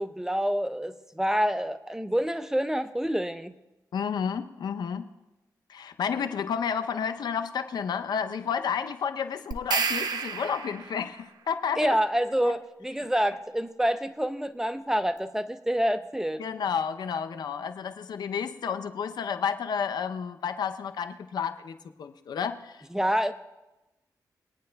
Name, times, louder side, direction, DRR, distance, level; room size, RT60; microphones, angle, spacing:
voice 1, 0.0-3.5 11.8-16.4 22.9-23.3, equal, 5° right, 9 dB, 0.6 m, -27 dB
voice 2, 3.9-5.1 5.7-12.0 12.4-12.5 16.4-22.8, left 7 dB, 85° left, 9 dB, 0.6 m, -31 dB
sound 1, 9.5-11.1, right 6 dB, 75° right, 0.7 m, -30 dB
23.5 x 9.5 x 2.3 m, 1.0 s
cardioid pair, 70°, 7 cm